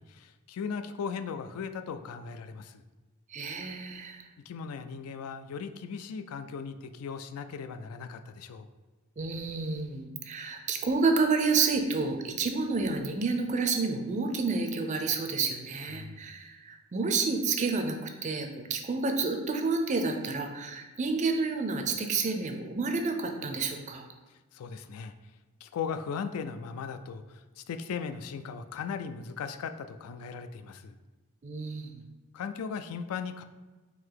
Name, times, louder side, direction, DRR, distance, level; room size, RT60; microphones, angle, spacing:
voice 1, 0.0-2.8 4.5-8.7 15.9-16.3 24.3-25.1 25.6-30.9 32.3-33.4, left 6 dB, 80° left, 9 dB, 0.3 m, -38 dB
voice 2, 3.3-4.2 9.2-24.0 31.4-32.0, right 4 dB, 35° right, 5 dB, 0.4 m, -29 dB
3.9 x 2.7 x 4.6 m, 1.2 s
head